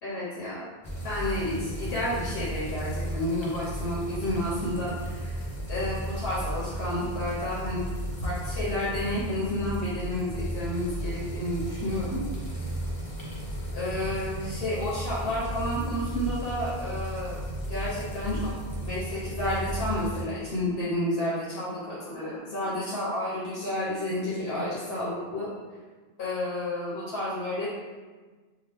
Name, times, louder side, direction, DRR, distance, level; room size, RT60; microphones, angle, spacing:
voice 1, 0.0-0.6 1.0-5.4 5.7-7.9 8.2-12.2 13.7-17.4 17.7-18.5 18.8-25.5 26.2-27.7, left 1 dB, 75° left, -8 dB, 1.0 m, -31 dB
sound 1, 0.8-20.2, right 1 dB, 35° left, 0.3 m, -34 dB
2.9 x 2.1 x 3.2 m, 1.4 s
omnidirectional pair, 1.1 m